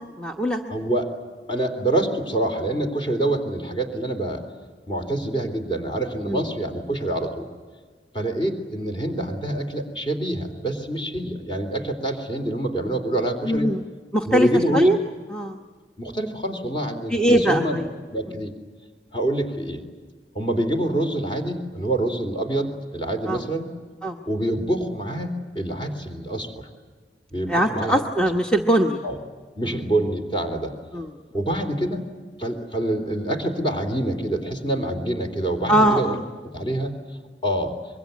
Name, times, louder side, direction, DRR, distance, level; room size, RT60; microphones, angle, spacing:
voice 1, 0.2-0.6 6.3-6.5 13.5-13.8 14.1-14.5 14.7-15.0 15.3-15.6 17.1-17.9 23.3-23.4 24.0-24.2 27.5-29.0 29.6-29.8 30.9-31.1 35.7-36.2, equal, 5° left, 3 dB, 1.0 m, -21 dB
voice 2, 0.7-1.1 1.5-4.4 4.9-7.5 8.1-13.7 14.2-14.9 16.0-17.8 18.1-18.5 19.1-19.8 20.3-23.7 24.2-26.7 27.3-28.2 29.0-29.2 29.6-30.7 31.3-32.1 32.4-36.2 36.5-37.0 37.4-37.7, right 1 dB, 30° left, 5 dB, 3.4 m, -26 dB
25.0 x 23.0 x 9.5 m, 1.5 s
head